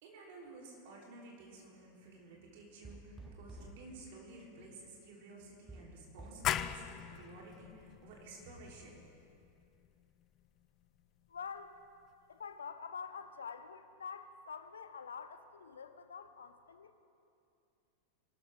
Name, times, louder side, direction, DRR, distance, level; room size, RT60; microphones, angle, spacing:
voice 1, 0.0-9.1, right 2 dB, 50° right, -2 dB, 3.4 m, -53 dB
sound 1, 2.8-3.8 5.7-6.9, right 2 dB, 5° right, 1.3 m, -51 dB
sound 2, 6.4-11.8, left 11 dB, 35° left, 0.4 m, -41 dB
voice 2, 11.3-11.7 12.3-17.0, left 6 dB, 70° left, 10 dB, 0.7 m, -46 dB
23.0 x 12.5 x 3.5 m, 2.7 s
figure-of-eight pair, 90°, 0 cm